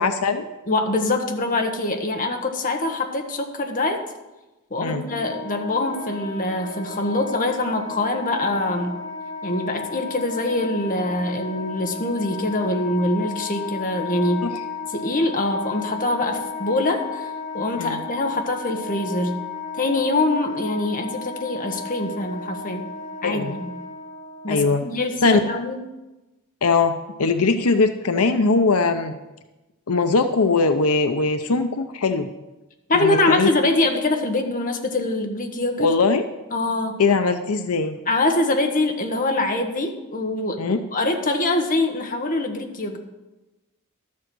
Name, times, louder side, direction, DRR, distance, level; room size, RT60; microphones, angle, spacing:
voice 1, 0.0-0.5 4.8-5.0 17.8-18.0 23.2-23.5 24.5-24.8 25.2-25.4 26.6-29.1 29.9-32.3 32.9-33.5 35.8-36.2 37.0-38.0 40.6-40.8, left 4 dB, 85° left, 8 dB, 0.7 m, -20 dB
voice 2, 0.7-4.0 4.7-9.0 9.4-14.4 14.9-17.3 17.5-19.4 19.8-22.9 23.2-23.7 24.4-25.8 32.9-35.9 36.5-37.0 38.1-43.0, left 2 dB, 40° left, 4 dB, 1.3 m, -24 dB
Wind instrument woodwind instrument, 5.0-24.5, left 4 dB, 55° left, 3.2 m, -34 dB
12.5 x 7.5 x 6.2 m, 1.1 s
head